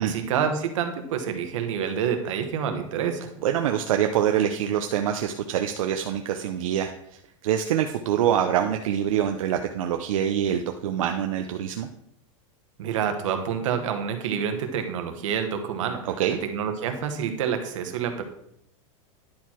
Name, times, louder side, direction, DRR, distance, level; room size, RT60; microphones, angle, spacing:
voice 1, 0.0-3.3 12.8-16.0 16.4-18.2, right 7 dB, 70° right, 6 dB, 1.3 m, -28 dB
voice 2, 3.4-11.9 16.0-16.4, right 9 dB, 90° right, 5 dB, 0.7 m, -25 dB
10.5 x 4.6 x 4.4 m, 0.73 s
supercardioid pair, 180°, 17 cm